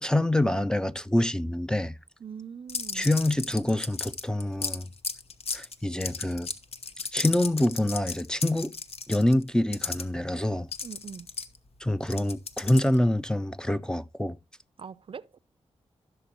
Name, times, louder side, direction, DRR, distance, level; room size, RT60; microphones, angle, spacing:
voice 1, 0.0-2.0 2.9-4.9 5.5-6.5 7.1-8.7 9.1-10.7 11.8-14.4, left 1 dB, 5° left, 0.5 m, -26 dB
voice 2, 2.2-3.1 10.8-11.3 14.8-15.4, right 7 dB, 55° right, 0.5 m, -42 dB
sound 1, 2.7-10.0 10.7-13.1, left 5 dB, 65° left, 1.0 m, -34 dB
15.5 x 6.8 x 2.9 m
cardioid pair, 75°, 11 cm